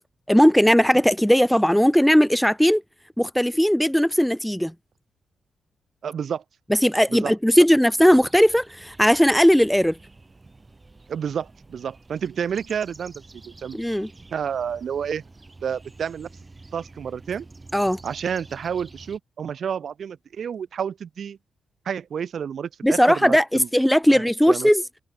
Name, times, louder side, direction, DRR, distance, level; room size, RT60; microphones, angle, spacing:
voice 1, 0.3-2.8 3.2-4.7 6.7-10.0 13.7-14.1 17.7-18.0 22.8-24.8, equal, ahead, 0.7 m, -18 dB
voice 2, 6.0-6.4 7.1-7.3 11.1-13.8 14.3-15.2 15.6-16.3 16.7-17.5 18.0-21.4 21.8-23.7 24.1-24.7, right 7 dB, 50° right, 0.9 m, -30 dB
sound 1, 8.0-19.2, right 3 dB, 15° right, 4.8 m, -48 dB
wide cardioid pair, 165°, 0 cm